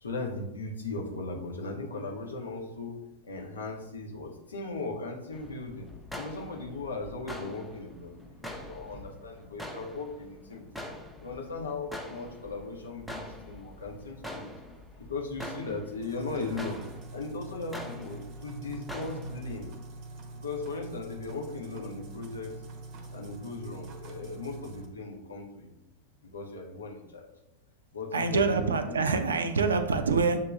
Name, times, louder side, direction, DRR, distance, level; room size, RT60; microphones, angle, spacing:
voice 1, 0.0-5.9 6.2-10.9 11.2-14.5 14.9-16.8 17.1-19.7 20.3-22.6 23.1-25.7 26.2-27.3 27.9-28.9, left 3 dB, 70° left, 1 dB, 0.8 m, -38 dB
sound 1, 5.3-19.7, left 1 dB, ahead, 0.6 m, -44 dB
sound 2, 16.0-24.9, right 3 dB, 40° right, 0.7 m, -44 dB
voice 2, 28.1-30.4, right 4 dB, 70° right, 9 dB, 0.4 m, -25 dB
6.8 x 2.9 x 2.4 m, 0.90 s
figure-of-eight pair, 90°, 0 cm